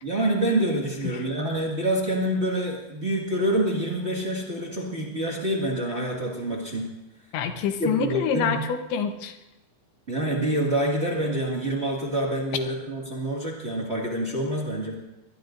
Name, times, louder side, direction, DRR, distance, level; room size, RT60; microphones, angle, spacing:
voice 1, 0.0-6.8 7.8-8.6 10.1-14.9, right 1 dB, 60° right, -3 dB, 0.6 m, -26 dB
voice 2, 7.3-9.4, left 7 dB, 90° left, 6 dB, 3.5 m, -26 dB
23.0 x 21.0 x 2.6 m, 1.0 s
omnidirectional pair, 5.0 m